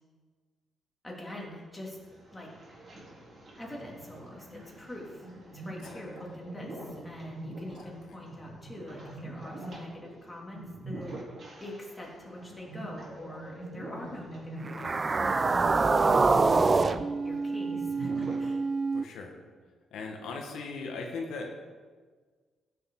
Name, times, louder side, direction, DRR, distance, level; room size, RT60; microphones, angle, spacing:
voice 1, 1.0-2.0 2.3-2.5 3.6-5.3 5.5-11.2 11.6-16.8 17.2-18.6, left 1 dB, 10° left, -3 dB, 2.5 m, -44 dB
sound 1, 1.9-18.4, right 1 dB, 45° right, 3.5 m, -44 dB
sound 2, 14.7-19.0, right 4 dB, 30° right, 0.3 m, -26 dB
voice 2, 18.9-19.4 19.9-21.5, left 4 dB, 85° left, 1 dB, 1.4 m, -38 dB
15.0 x 6.7 x 3.8 m, 1.5 s
cardioid pair, 120°, 0 cm